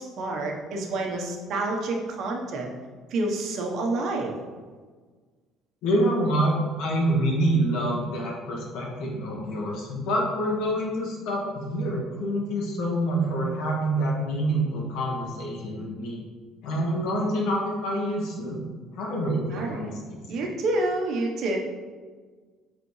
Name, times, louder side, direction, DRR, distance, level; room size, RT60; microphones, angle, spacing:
voice 1, 0.0-2.7 3.1-4.4 19.5-19.9 20.3-21.6, right 2 dB, 60° right, 1 dB, 1.2 m, -28 dB
voice 2, 5.8-16.2 16.6-18.6 18.9-20.2, right 1 dB, 75° left, -2 dB, 1.7 m, -26 dB
7.9 x 4.1 x 3.3 m, 1.5 s
cardioid pair, 115°, 0 cm